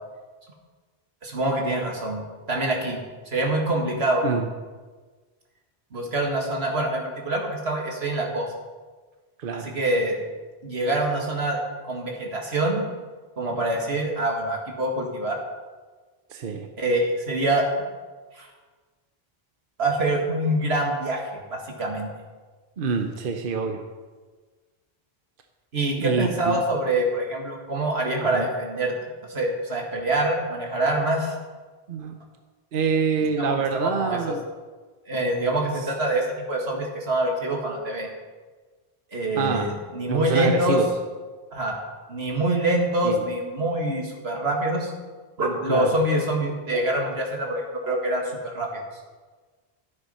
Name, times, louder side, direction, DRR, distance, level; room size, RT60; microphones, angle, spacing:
voice 1, 1.2-3.0 3.3-4.3 5.9-8.5 9.6-10.2 10.6-11.6 11.8-12.8 13.4-15.4 16.8-17.7 18.3-18.5 19.8-22.1 25.7-28.9 29.3-31.3 33.4-34.3 35.1-38.1 39.1-40.8 41.5-41.8 42.1-44.9 45.4-48.7, right 1 dB, 85° right, 0 dB, 2.2 m, -25 dB
voice 2, 9.4-9.7 16.3-16.7 22.8-23.8 26.0-26.6 28.2-28.5 31.9-32.2 32.7-34.4 39.4-39.7 40.1-40.9 43.0-43.2 45.7-45.9, right 5 dB, 60° right, 5 dB, 1.0 m, -26 dB
13.0 x 8.1 x 5.5 m, 1.4 s
omnidirectional pair, 1.0 m